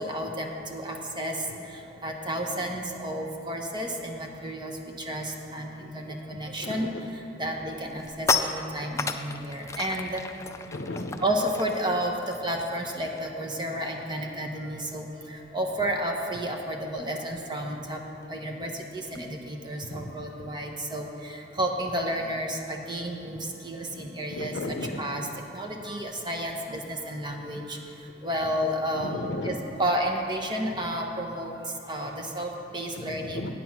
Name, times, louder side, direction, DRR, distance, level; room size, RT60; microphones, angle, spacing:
voice 1, 0.0-1.3 2.0-4.7 5.1-6.9 7.4-10.2 11.2-15.1 15.5-18.0 18.3-21.1 21.6-23.4 23.6-24.5 25.0-25.3 25.5-27.8 28.2-29.2 29.4-31.6 31.9-33.4, right 1 dB, 25° right, 2 dB, 0.9 m, -31 dB
voice 2, 6.3-6.9 10.7-11.2 19.9-20.1 20.4-20.5 23.9-24.0 24.3-25.0 28.9-29.6 32.9-33.5, left 2 dB, 65° left, 7 dB, 0.7 m, -35 dB
sound 1, 7.5-13.5 13.7-14.0 14.3-19.3, left 4 dB, 15° left, 0.3 m, -35 dB
9.2 x 8.6 x 5.9 m, 2.7 s
head